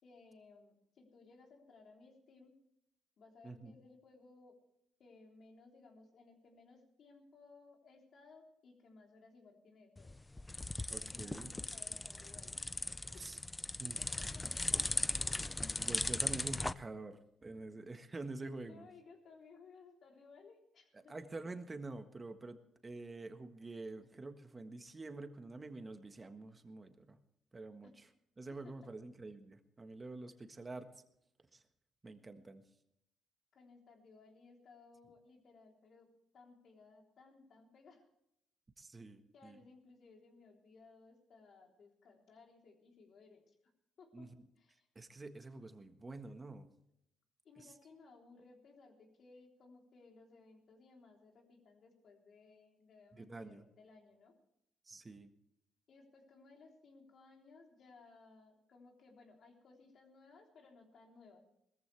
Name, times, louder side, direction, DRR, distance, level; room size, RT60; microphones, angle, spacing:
voice 1, 0.0-2.5 3.2-4.5 5.0-10.2 10.9-12.7 13.1-13.2 13.8-14.8 15.1-15.2 18.6-21.1 27.8-27.9 28.6-28.7 33.5-38.1 39.3-43.6 44.0-44.9 47.4-54.4 55.9-61.4, left 4 dB, 60° left, 1 dB, 3.6 m, -61 dB
sound 1, 10.0-16.7, left 2 dB, 15° left, 0.5 m, -38 dB
voice 2, 10.9-11.5 13.2-13.4 13.8-14.0 15.8-18.9 21.1-22.6 22.8-27.2 27.5-28.1 28.4-30.9 31.5-31.6 32.0-32.6 38.8-39.6 44.1-44.3 44.9-46.7 53.1-53.6 54.9-55.3, right 2 dB, 25° right, 7 dB, 1.5 m, -47 dB
20.5 x 14.0 x 3.4 m, 0.78 s
cardioid pair, 90°, 0 cm